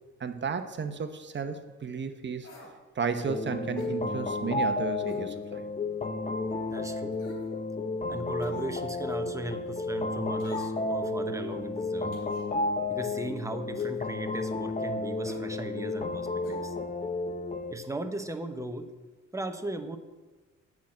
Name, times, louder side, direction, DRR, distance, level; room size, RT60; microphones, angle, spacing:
voice 1, 0.2-2.5 2.9-5.6, right 5 dB, 40° right, 8 dB, 1.0 m, -33 dB
sound 1, 2.4-2.8 3.8-4.0 5.1-5.3 5.8-5.9 7.1-7.5 8.4-8.8 10.4-11.0 12.1-12.5 13.8-14.1 15.2-15.4 16.4-16.6 16.9-17.0, left 2 dB, 80° left, 2.6 m, -49 dB
sound 2, 3.3-17.7, left 2 dB, 25° left, 0.7 m, -32 dB
voice 2, 6.7-7.2 8.1-12.2 12.9-16.8 17.7-18.9 19.3-20.0, right 2 dB, 10° right, 6 dB, 1.0 m, -37 dB
8.2 x 6.0 x 7.6 m, 1.2 s
cardioid pair, 90°, 30 cm